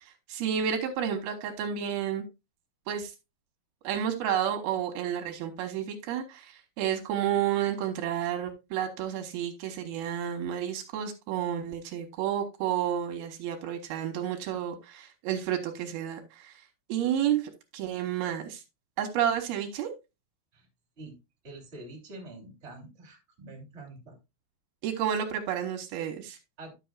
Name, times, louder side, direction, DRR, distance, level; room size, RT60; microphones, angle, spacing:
voice 1, 0.0-2.3 2.9-3.1 3.8-16.6 16.9-18.6 19.0-19.9 24.8-26.4, right 9 dB, 80° right, 5 dB, 2.9 m, -31 dB
voice 2, 21.4-24.1 26.6-26.7, right 2 dB, 20° right, 1 dB, 2.4 m, -46 dB
11.0 x 6.8 x 2.3 m, 0.24 s
omnidirectional pair, 4.4 m